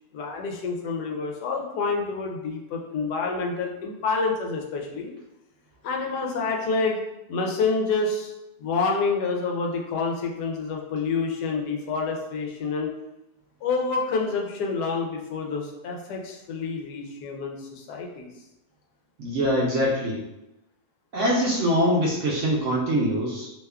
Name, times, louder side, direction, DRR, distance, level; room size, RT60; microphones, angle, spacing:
voice 1, 0.1-5.1 5.8-7.0 7.3-8.3 8.6-12.9 13.6-18.3, left 4 dB, 90° left, 0 dB, 1.2 m, -28 dB
voice 2, 19.2-20.2 21.1-23.5, equal, 70° right, -3 dB, 0.7 m, -23 dB
2.9 x 2.2 x 3.4 m, 0.90 s
omnidirectional pair, 1.7 m